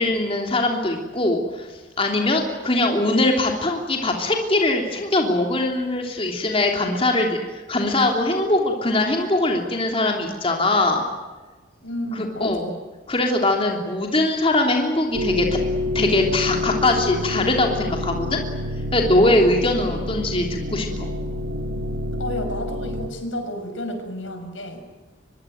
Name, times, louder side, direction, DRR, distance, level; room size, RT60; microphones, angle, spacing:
voice 1, 0.0-1.7 2.0-7.4 7.7-11.0 12.1-12.6 13.1-15.6 15.9-18.4 18.9-21.1, left 2 dB, 30° left, 2 dB, 3.2 m, -21 dB
voice 2, 11.8-12.8 22.2-24.9, left 1 dB, 80° left, 7 dB, 6.2 m, -31 dB
sound 1, 15.1-23.1, left 1 dB, 85° right, 1.5 m, -27 dB
24.0 x 23.5 x 9.2 m, 1.3 s
head